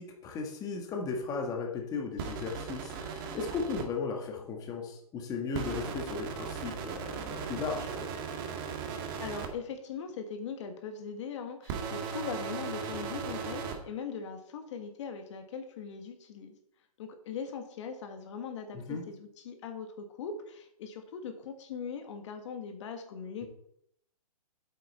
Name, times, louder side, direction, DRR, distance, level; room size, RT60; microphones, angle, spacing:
voice 1, 0.0-8.0 18.7-19.0 23.4-23.5, left 4 dB, 20° left, 1 dB, 1.6 m, -36 dB
sound 1, 2.2-3.8 5.5-9.5 11.6-13.8, right 6 dB, 35° right, 1.6 m, -37 dB
voice 2, 8.9-16.5 17.0-23.5, left 6 dB, 50° left, 6 dB, 1.4 m, -40 dB
8.3 x 8.1 x 4.2 m, 0.71 s
hypercardioid pair, 140°, 19 cm